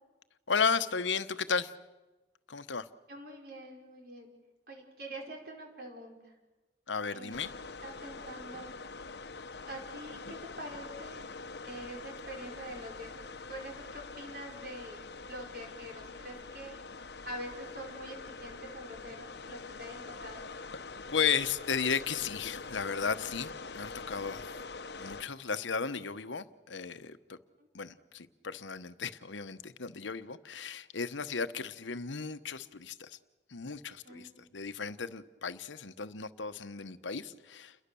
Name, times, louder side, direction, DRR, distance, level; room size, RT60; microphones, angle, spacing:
voice 1, 0.5-1.7 2.5-2.9 6.9-7.5 21.1-24.5 25.0-27.4 27.7-33.2 33.5-37.8, left 6 dB, 85° left, 11 dB, 1.1 m, -34 dB
voice 2, 3.1-4.3 4.7-6.3 7.1-7.4 7.8-8.7 9.7-11.2 11.6-16.8 17.2-20.4 27.6-27.7 34.0-34.5, right 1 dB, 55° right, 2 dB, 5.0 m, -45 dB
sound 1, 7.3-25.2, left 4 dB, 60° left, 1.0 m, -45 dB
29.5 x 22.0 x 7.0 m, 1.1 s
head